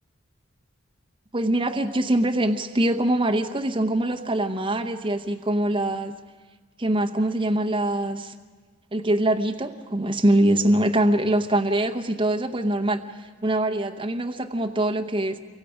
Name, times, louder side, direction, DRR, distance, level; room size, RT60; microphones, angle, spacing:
voice 1, 1.3-6.1 6.8-8.3 8.9-15.4, right 1 dB, 25° right, 5 dB, 0.8 m, -23 dB
29.0 x 23.5 x 5.1 m, 1.4 s
head